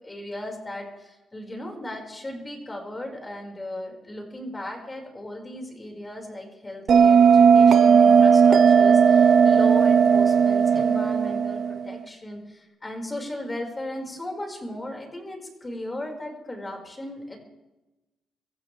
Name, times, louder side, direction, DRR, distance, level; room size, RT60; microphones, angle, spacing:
voice 1, 0.0-17.4, left 1 dB, 20° left, 1 dB, 5.5 m, -36 dB
Bell, 6.9-12.0, right 6 dB, 55° right, 1.1 m, -16 dB
24.5 x 15.0 x 3.5 m, 1.0 s
cardioid pair, 90°, 0 cm